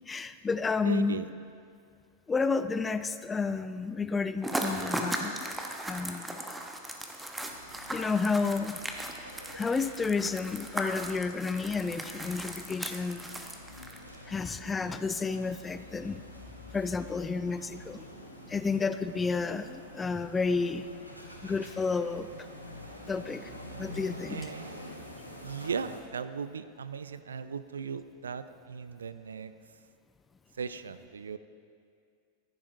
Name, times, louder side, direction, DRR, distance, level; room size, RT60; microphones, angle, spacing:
voice 1, 0.1-1.2 2.3-5.5 5.9-6.4 7.9-8.8 9.5-13.3 14.3-16.2 16.7-18.1 18.5-20.9 21.4-22.3 23.1-23.5 23.8-24.5, left 4 dB, 15° left, 12 dB, 0.3 m, -31 dB
voice 2, 0.8-1.3 24.3-24.7 25.4-29.5 30.6-31.4, right 6 dB, 70° right, 12 dB, 0.4 m, -37 dB
sound 1, 4.4-14.2, right 1 dB, 5° right, 0.9 m, -37 dB
sound 2, 7.4-26.0, left 1 dB, 90° left, 1.1 m, -47 dB
14.5 x 10.5 x 2.7 m, 2.3 s
figure-of-eight pair, 90°, 0 cm